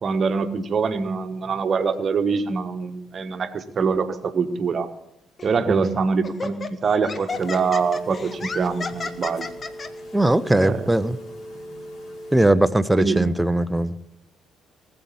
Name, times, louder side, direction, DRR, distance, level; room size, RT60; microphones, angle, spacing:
voice 1, 0.0-4.9 5.4-9.5 10.5-11.0 13.0-13.3, right 5 dB, 45° right, 10 dB, 1.2 m, -24 dB
Laughter, 5.4-5.6 6.2-9.9, left 4 dB, 35° left, 1.1 m, -32 dB
Telephone, 7.3-12.5, equal, 55° left, 4.1 m, -39 dB
voice 2, 10.1-11.2 12.3-13.9, right 1 dB, 10° right, 13 dB, 0.8 m, -19 dB
19.0 x 7.8 x 7.1 m, 0.84 s
figure-of-eight pair, 45°, 0 cm